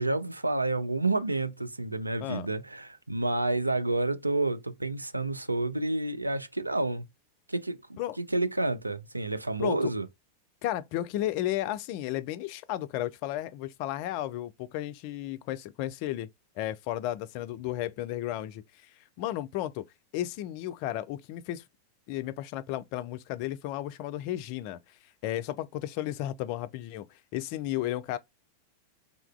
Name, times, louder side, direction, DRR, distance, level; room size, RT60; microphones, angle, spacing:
voice 1, 0.0-7.0 7.5-10.1, right 2 dB, 85° right, 0.3 m, -29 dB
voice 2, 9.6-9.9 10.6-16.3 16.6-18.6 19.2-19.8 20.1-21.6 22.1-24.8 25.2-27.1 27.3-28.2, left 13 dB, 45° left, 0.3 m, -33 dB
3.6 x 2.3 x 2.3 m
figure-of-eight pair, 90°, 0 cm